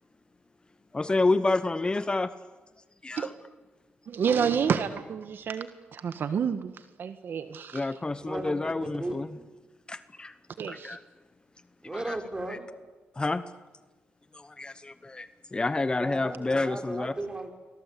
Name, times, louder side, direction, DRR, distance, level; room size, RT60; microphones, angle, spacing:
voice 1, 0.9-2.3 3.0-3.3 7.7-9.3 9.9-10.3 10.7-11.0 11.9-12.2 12.5-12.6 13.2-13.4 14.3-17.1, left 3 dB, 25° left, 13 dB, 1.0 m, -29 dB
voice 2, 4.1-6.7 7.0-7.8 10.6-11.0, right 7 dB, 65° right, 10 dB, 1.5 m, -29 dB
voice 3, 8.0-9.4 11.8-12.7 16.0-17.5, right 2 dB, 20° right, 4 dB, 4.8 m, -36 dB
29.0 x 22.5 x 8.4 m, 1.2 s
cardioid pair, 85°, 4 cm